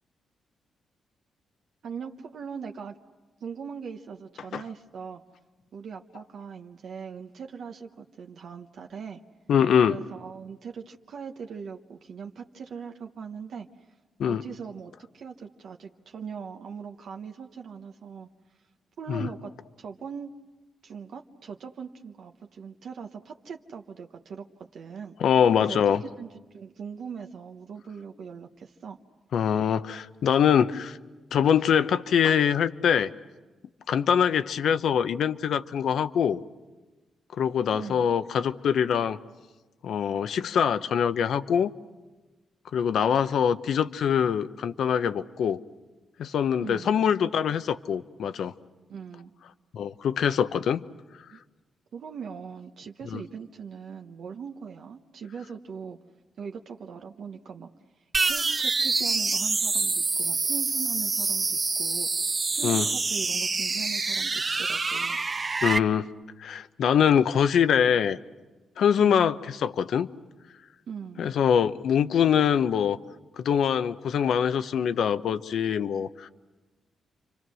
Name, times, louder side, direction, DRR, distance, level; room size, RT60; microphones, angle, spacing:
voice 1, 1.8-3.0 3.4-5.2 5.7-9.2 9.8-13.7 14.3-18.3 19.0-19.5 19.8-20.3 20.8-25.1 25.6-25.8 26.2-29.0 37.7-38.1 46.6-47.0 48.9-49.3 51.3-51.4 51.9-56.0 56.4-57.7 58.0-65.2 69.0-69.3 70.9-71.3, right 6 dB, 70° right, 3 dB, 1.0 m, -40 dB
voice 2, 9.5-10.0 14.2-14.4 19.1-19.3 25.2-26.0 29.3-31.0 31.3-33.1 33.9-36.4 37.3-39.2 39.8-41.7 42.7-45.6 46.2-48.5 49.7-50.8 53.1-53.2 62.6-62.9 65.6-66.1 66.4-68.2 68.8-70.1 71.2-73.0 73.4-76.3, left 8 dB, 75° left, 12 dB, 0.8 m, -24 dB
sound 1, 58.1-65.8, right 4 dB, 35° right, 0.9 m, -26 dB
30.0 x 25.0 x 6.3 m, 1.2 s
cardioid pair, 90°, 0 cm